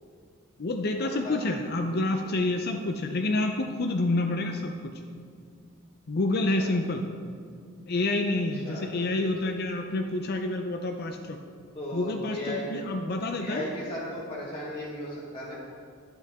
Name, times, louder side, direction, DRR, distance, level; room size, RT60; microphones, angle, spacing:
voice 1, 0.6-4.9 6.1-7.0 7.9-11.4 11.9-13.7, left 2 dB, 50° left, 4 dB, 0.5 m, -28 dB
voice 2, 8.6-9.1 9.4-9.5 11.7-12.7 13.4-15.5, left 1 dB, 25° left, -7 dB, 1.4 m, -36 dB
11.5 x 7.9 x 3.5 m, 2.2 s
head